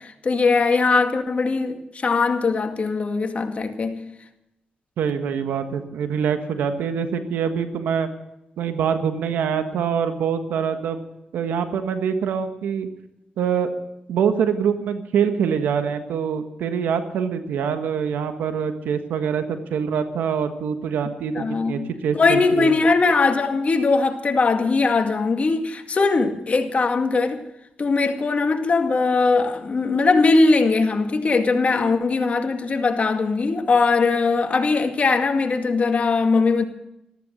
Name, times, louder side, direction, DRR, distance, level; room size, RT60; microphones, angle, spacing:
voice 1, 0.0-4.0 21.3-21.9 22.1-27.4 27.8-36.6, left 4 dB, 45° left, 2.1 m, -20 dB
voice 2, 5.0-8.1 8.6-11.1 11.3-12.9 13.4-13.8 14.1-22.7, right 7 dB, 90° right, 1.5 m, -24 dB
14.0 x 14.0 x 6.5 m
cardioid pair, 60°, 3 cm